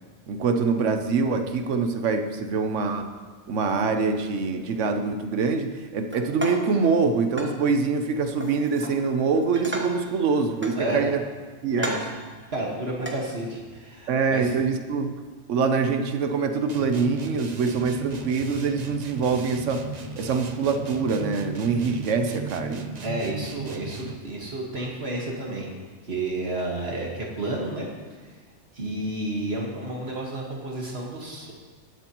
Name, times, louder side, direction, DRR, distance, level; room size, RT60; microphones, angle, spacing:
voice 1, 0.3-3.1 3.5-11.2 11.6-12.0 14.1-15.2 15.5-19.9 20.2-22.9, right 4 dB, 85° right, 7 dB, 1.1 m, -24 dB
sound 1, 6.1-6.8 7.4-7.6 8.4-9.0 9.4-10.1 10.6-11.3 11.7-12.2 13.0-13.2, right 1 dB, 10° right, 1.1 m, -34 dB
voice 2, 12.5-14.5 23.0-25.7 26.0-27.9 28.7-31.5, right 1 dB, 60° right, -2 dB, 1.9 m, -31 dB
sound 2, 16.7-24.3, right 4 dB, 40° right, 0.7 m, -36 dB
20.0 x 7.9 x 3.0 m, 1.4 s
omnidirectional pair, 1.2 m